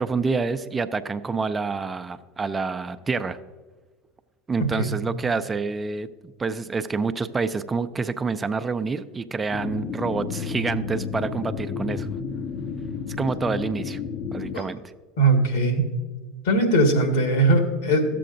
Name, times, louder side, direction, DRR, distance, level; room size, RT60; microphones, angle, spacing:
voice 1, 0.0-3.4 4.5-6.1 6.4-12.1 13.2-14.0 14.3-14.8, right 4 dB, 20° right, 10 dB, 0.4 m, -27 dB
sound 1, 9.5-14.6, left 6 dB, 50° left, 0.7 m, -31 dB
voice 2, 15.2-15.8 16.4-18.1, right 2 dB, 75° left, 3 dB, 1.6 m, -20 dB
13.5 x 7.6 x 2.6 m, 1.4 s
hypercardioid pair, 80°, 0 cm